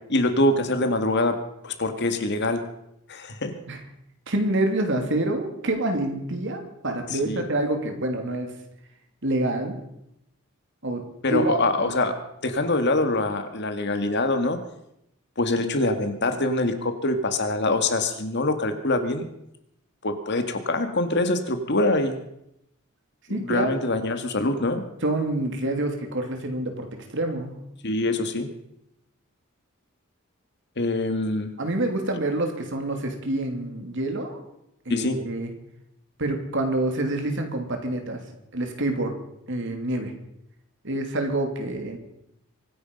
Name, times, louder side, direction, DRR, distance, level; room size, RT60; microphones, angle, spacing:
voice 1, 0.1-1.4 1.6-2.6 3.1-3.5 7.1-7.5 11.2-14.6 15.4-19.3 20.0-22.2 23.3-24.8 27.8-28.5 30.8-31.5 34.9-35.3, left 2 dB, 55° left, 7 dB, 1.9 m, -24 dB
voice 2, 4.3-8.5 9.2-9.8 10.8-12.0 23.3-23.7 25.0-27.5 31.6-34.4 34.8-35.5 36.2-38.2 38.5-39.1 39.5-40.1 40.8-42.0, right 1 dB, 60° right, 4 dB, 2.9 m, -27 dB
24.5 x 10.0 x 5.4 m, 0.80 s
head